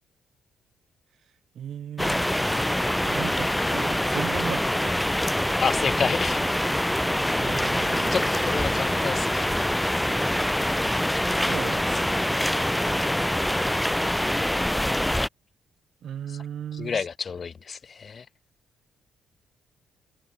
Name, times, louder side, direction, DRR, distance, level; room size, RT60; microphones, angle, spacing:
voice 1, 1.5-2.3 3.1-5.2 7.4-8.5 11.3-12.5 16.0-17.0, right 9 dB, 65° right, 1.4 m, -36 dB
sound 1, 2.0-15.3, left 1 dB, 5° left, 0.4 m, -25 dB
voice 2, 5.6-6.6 8.1-9.8 16.3-16.4 16.7-18.3, left 6 dB, 45° left, 0.8 m, -30 dB
cardioid pair, 90°, 0 cm